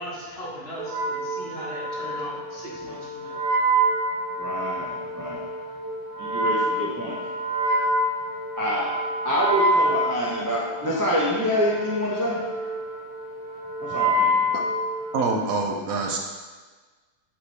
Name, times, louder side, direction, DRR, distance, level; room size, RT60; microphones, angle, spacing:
voice 1, 0.0-3.4, equal, 40° left, -6 dB, 1.7 m, -38 dB
Wind instrument woodwind instrument, 0.8-15.5, right 1 dB, 90° right, 1.5 m, -27 dB
voice 2, 4.4-5.4 6.2-7.2 8.6-8.9 9.2-12.4 13.9-14.4, left 1 dB, 15° right, -6 dB, 0.7 m, -26 dB
voice 3, 15.1-16.2, right 3 dB, 70° right, 1 dB, 1.1 m, -26 dB
5.9 x 5.0 x 4.2 m, 1.4 s
omnidirectional pair, 1.6 m